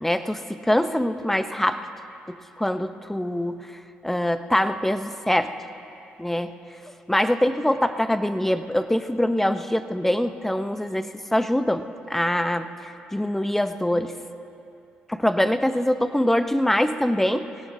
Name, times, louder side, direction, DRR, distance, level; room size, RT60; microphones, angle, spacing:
voice 1, 0.0-1.9 2.3-3.7 4.0-5.6 6.2-6.5 7.1-14.1 15.1-17.5, left 1 dB, 5° left, 10 dB, 0.8 m, -24 dB
23.0 x 17.0 x 2.8 m, 2.7 s
hypercardioid pair, 55°, 4 cm